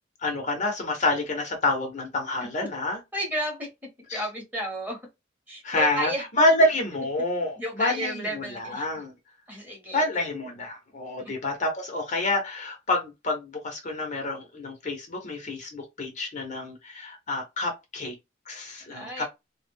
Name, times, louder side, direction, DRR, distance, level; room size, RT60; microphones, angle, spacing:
voice 1, 0.2-3.0 4.1-4.2 5.6-9.1 9.9-18.1 18.5-19.2, left 2 dB, 40° left, 0.7 m, -28 dB
voice 2, 3.1-3.7 4.0-5.1 5.5-6.3 7.0-7.1 7.6-8.9 9.5-10.1 11.2-11.3 18.9-19.2, equal, 10° right, 0.9 m, -33 dB
2.3 x 2.0 x 3.4 m
head